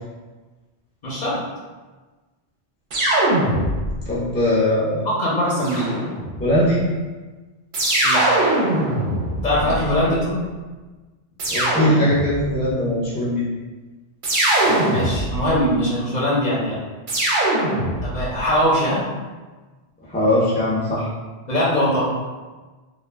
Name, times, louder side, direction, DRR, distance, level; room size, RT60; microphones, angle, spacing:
voice 1, 1.0-1.4 5.0-5.9 8.0-8.2 9.4-10.4 14.6-16.8 18.0-19.0 21.5-22.1, equal, 45° left, -7 dB, 0.7 m, -21 dB
sound 1, 2.9-4.1 5.6-6.5 7.7-10.1 11.4-12.5 14.2-15.6 17.1-18.3, right 1 dB, 55° right, 0.7 m, -21 dB
voice 2, 4.1-5.1 6.4-6.8 9.6-9.7 11.5-13.4 20.0-21.1, left 1 dB, 15° left, -8 dB, 0.4 m, -20 dB
2.2 x 2.1 x 3.2 m, 1.3 s
omnidirectional pair, 1.1 m